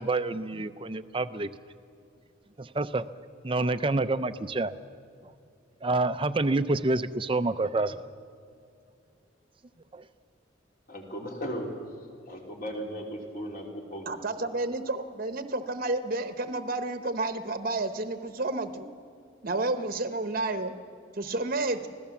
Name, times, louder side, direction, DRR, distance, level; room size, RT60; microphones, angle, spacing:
voice 1, 0.0-1.5 2.6-3.0 3.4-4.7 5.8-8.0 9.9-10.0, right 2 dB, 25° right, 11 dB, 0.5 m, -28 dB
voice 2, 10.9-11.7 12.3-14.1, equal, 45° left, 0 dB, 3.4 m, -36 dB
voice 3, 14.0-18.9 19.4-20.7 21.1-21.9, right 2 dB, 45° right, 9 dB, 1.0 m, -30 dB
25.0 x 16.5 x 7.2 m, 2.4 s
head